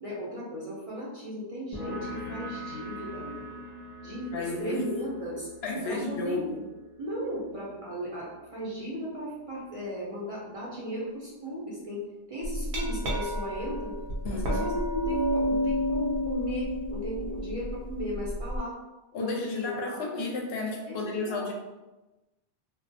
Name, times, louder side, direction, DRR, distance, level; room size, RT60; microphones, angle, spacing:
voice 1, 0.0-3.6 4.0-5.5 5.9-6.5 7.0-12.0 12.3-13.9 14.3-18.8 19.2-20.0 20.9-21.5, equal, 40° right, -6 dB, 0.5 m, -36 dB
sound 1, 1.7-9.0, left 1 dB, 25° left, 1.0 m, -43 dB
voice 2, 4.3-4.9 5.6-6.6 14.2-14.7 19.1-21.5, left 3 dB, 70° left, 0 dB, 0.8 m, -32 dB
Glass, 12.4-18.6, equal, 75° right, 0.9 m, -30 dB
2.4 x 2.1 x 2.6 m, 1.1 s
omnidirectional pair, 1.1 m